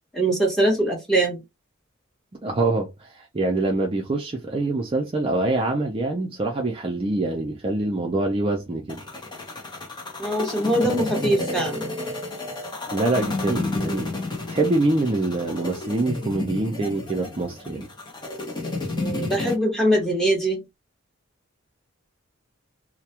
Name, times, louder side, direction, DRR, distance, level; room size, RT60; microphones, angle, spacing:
voice 1, 0.1-1.4 10.2-11.9 18.9-20.6, right 1 dB, ahead, 0.9 m, -22 dB
voice 2, 2.4-9.0 12.9-14.2 14.5-17.9, right 2 dB, 25° right, 0.4 m, -25 dB
sound 1, 8.9-19.6, left 2 dB, 20° left, 0.6 m, -31 dB
2.2 x 2.1 x 2.8 m
head